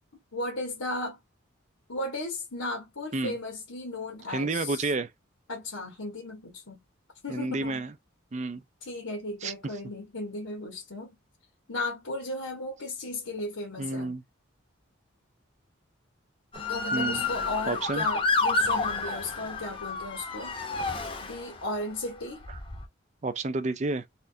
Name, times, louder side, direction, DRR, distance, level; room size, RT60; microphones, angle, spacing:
voice 1, 0.3-1.2 1.9-4.9 5.5-6.8 7.2-7.8 8.8-11.1 11.7-14.1 16.7-20.6 21.2-22.4, left 2 dB, 90° left, 1.3 m, -35 dB
voice 2, 4.3-5.1 7.3-7.9 8.3-8.6 9.4-9.5 13.8-14.2 16.9-17.2 17.7-18.1 22.5-22.6 23.2-24.1, right 3 dB, 35° right, 0.4 m, -30 dB
Motor vehicle (road) / Siren, 16.5-21.8 22.4-22.8, left 3 dB, 25° left, 0.7 m, -30 dB
4.2 x 2.5 x 2.7 m
head